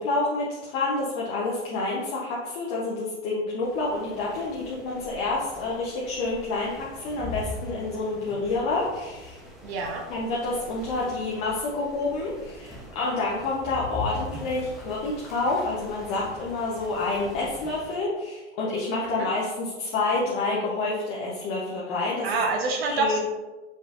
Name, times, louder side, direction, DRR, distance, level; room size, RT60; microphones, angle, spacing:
voice 1, 0.0-9.4 10.1-22.3 22.8-23.2, left 3 dB, 40° left, -4 dB, 0.9 m, -28 dB
sound 1, 3.6-18.0, left 2 dB, ahead, 0.7 m, -42 dB
voice 2, 9.6-10.0 19.0-19.3 22.2-23.2, right 3 dB, 55° right, 2 dB, 0.7 m, -27 dB
5.3 x 3.3 x 2.5 m, 1.2 s
hypercardioid pair, 105°, 35 cm